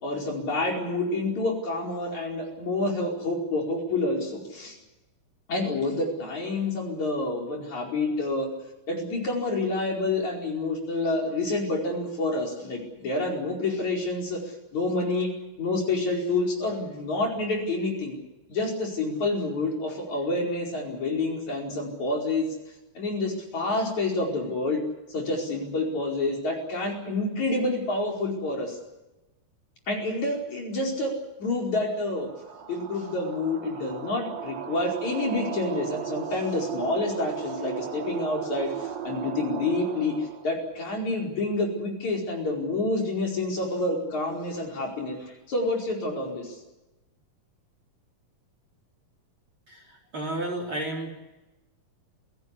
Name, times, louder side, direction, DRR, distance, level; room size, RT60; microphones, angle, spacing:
voice 1, 0.0-4.8 5.5-8.5 8.9-14.4 14.7-15.3 15.6-18.2 18.5-22.5 23.0-24.8 25.1-28.8 29.9-31.1 31.4-32.3 32.7-46.6, left 2 dB, 50° left, 0 dB, 6.0 m, -28 dB
sound 1, 32.1-40.5, right 8 dB, 50° right, 3.3 m, -36 dB
voice 2, 49.7-51.1, right 1 dB, 35° right, 2 dB, 4.4 m, -32 dB
27.5 x 17.5 x 8.5 m, 1.0 s
omnidirectional pair, 4.3 m